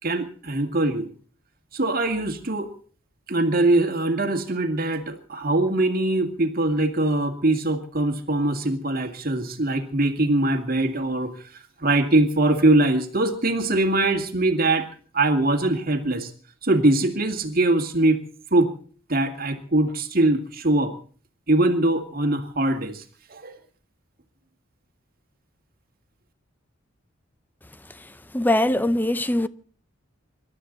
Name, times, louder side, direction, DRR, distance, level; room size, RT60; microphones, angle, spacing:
voice 1, 0.0-1.1 1.7-2.7 3.3-11.3 11.8-14.9 15.1-16.3 16.6-18.2 18.5-18.7 19.1-20.9 21.5-23.0 23.3-23.6, right 2 dB, 45° right, 2.1 m, -22 dB
voice 2, 28.3-29.5, left 1 dB, 10° left, 0.6 m, -21 dB
26.5 x 12.5 x 4.0 m
head